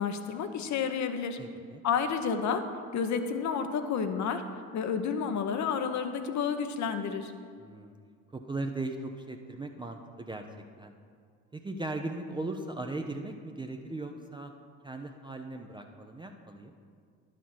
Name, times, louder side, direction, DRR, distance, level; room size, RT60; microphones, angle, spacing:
voice 1, 0.0-1.4 1.8-2.7 2.9-4.4 4.7-7.3, left 6 dB, 45° left, 8 dB, 0.8 m, -30 dB
voice 2, 1.4-1.8 7.6-7.9 8.3-10.4 10.8-10.9 11.5-14.5 14.8-16.7, right 2 dB, 10° right, 4 dB, 0.5 m, -38 dB
11.0 x 4.2 x 6.1 m, 2.1 s
hypercardioid pair, 65°, 40 cm